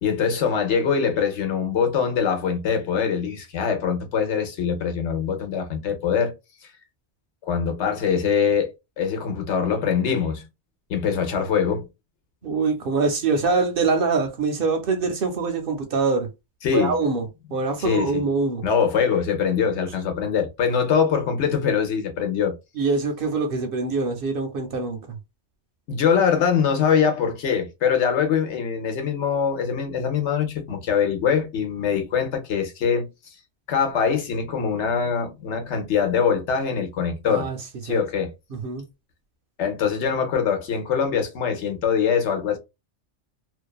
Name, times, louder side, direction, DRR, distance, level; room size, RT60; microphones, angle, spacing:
voice 1, 0.0-6.3 7.4-8.7 9.0-10.4 10.9-11.8 16.6-17.0 17.8-18.2 18.6-22.5 25.9-33.1 33.7-37.5 37.8-38.3 39.6-42.6, left 7 dB, 70° left, 1.1 m, -23 dB
voice 2, 12.4-16.3 16.7-18.6 22.8-25.2 37.3-37.6 37.9-38.0 38.5-38.8, right 4 dB, 60° right, 0.7 m, -24 dB
2.5 x 2.3 x 2.3 m
omnidirectional pair, 1.2 m